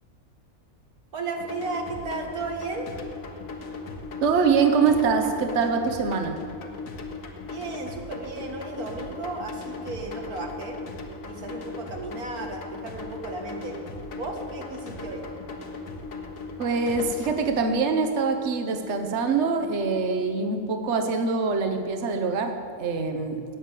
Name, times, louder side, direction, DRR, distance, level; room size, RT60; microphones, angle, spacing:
voice 1, 1.1-2.9 7.5-10.8 11.2-13.8 14.2-15.3, right 3 dB, 85° right, 1 dB, 2.4 m, -34 dB
sound 1, 1.4-17.4, left 3 dB, 65° left, 1.6 m, -38 dB
voice 2, 4.2-6.4 16.6-23.4, right 4 dB, 55° right, 5 dB, 1.2 m, -24 dB
16.5 x 9.3 x 8.3 m, 2.3 s
omnidirectional pair, 1.5 m